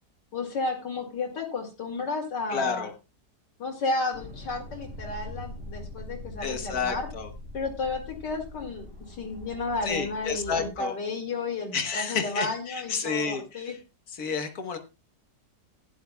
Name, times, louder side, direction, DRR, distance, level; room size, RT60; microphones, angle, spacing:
voice 1, 0.3-2.9 3.6-7.1 7.5-13.8, left 3 dB, 75° left, 2 dB, 2.9 m, -32 dB
voice 2, 2.5-2.9 6.4-7.3 9.8-10.9 11.7-13.8 14.1-14.8, left 5 dB, 60° left, 7 dB, 1.7 m, -30 dB
sound 1, 4.1-10.7, left 2 dB, 45° right, 3.0 m, -42 dB
16.0 x 10.0 x 2.3 m, 0.27 s
omnidirectional pair, 1.9 m